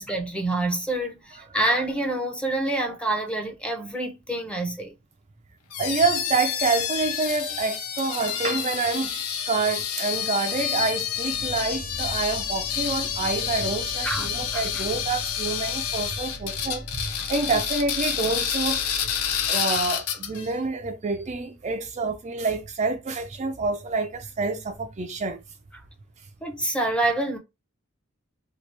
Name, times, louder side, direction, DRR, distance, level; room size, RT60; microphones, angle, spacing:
voice 1, 0.0-4.9 14.0-14.9 26.4-27.4, right 2 dB, 5° left, 0.7 m, -27 dB
sound 1, 5.7-20.5, left 9 dB, 85° left, 0.5 m, -29 dB
voice 2, 5.8-18.9 19.5-25.4, right 4 dB, 30° right, 0.4 m, -27 dB
sound 2, 11.1-19.5, equal, 50° left, 1.2 m, -41 dB
2.9 x 2.8 x 3.2 m
head